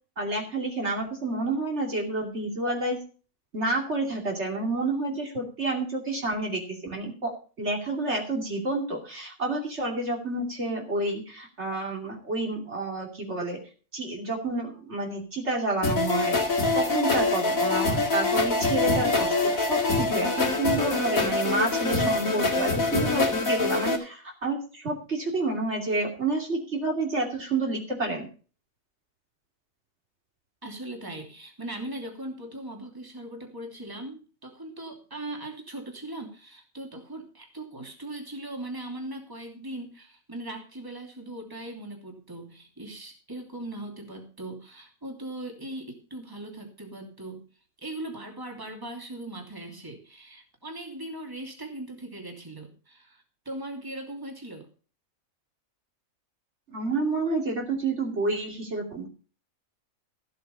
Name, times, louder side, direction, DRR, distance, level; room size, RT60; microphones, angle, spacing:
voice 1, 0.2-3.0 3.5-13.6 13.9-16.4 16.7-28.3 56.7-59.1, right 2 dB, 55° right, 1 dB, 3.1 m, -29 dB
sound 1, 15.8-24.0, left 3 dB, 80° left, 2.8 m, -25 dB
voice 2, 30.6-47.4 47.8-54.7, right 1 dB, 15° right, 2 dB, 2.9 m, -39 dB
14.5 x 7.8 x 5.4 m, 0.38 s
omnidirectional pair, 1.4 m